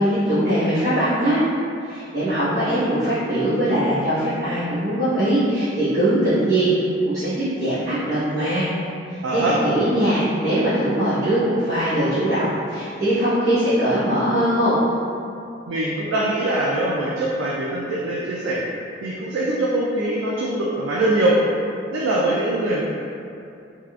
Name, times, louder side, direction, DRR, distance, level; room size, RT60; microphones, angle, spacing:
voice 1, 0.0-1.4 1.8-6.7 7.0-8.7 9.1-14.8, right 1 dB, 40° right, -19 dB, 1.1 m, -21 dB
voice 2, 9.2-9.6 15.7-18.6 19.0-21.4 21.9-22.8, right 1 dB, 85° right, -5 dB, 0.3 m, -22 dB
3.5 x 2.4 x 2.3 m, 2.6 s
head